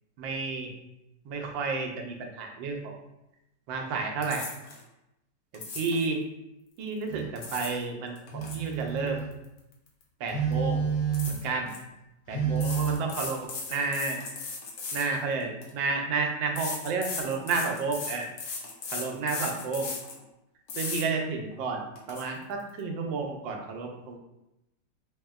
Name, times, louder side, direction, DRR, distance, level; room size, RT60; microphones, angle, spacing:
voice 1, 0.2-0.7 1.2-3.0 3.7-4.4 5.5-6.2 6.8-9.2 10.2-10.8 11.3-11.7 12.3-14.2 14.9-18.3 18.9-19.9 20.7-21.8 22.1-24.2, right 4 dB, 80° right, 2 dB, 1.3 m, -31 dB
sound 1, 4.2-4.8 5.5-6.1 7.1-7.8 8.2-10.0 10.3-10.5 11.1-11.8 12.6-15.7 16.6-20.2 20.7-21.0 21.5-21.6 22.0-22.2, left 4 dB, 60° left, 1.1 m, -37 dB
Telephone, 7.1-7.3 8.3-9.4 10.3-11.5 12.3-13.0, right 6 dB, 35° left, 0.9 m, -29 dB
5.2 x 2.8 x 2.3 m, 0.91 s
omnidirectional pair, 2.0 m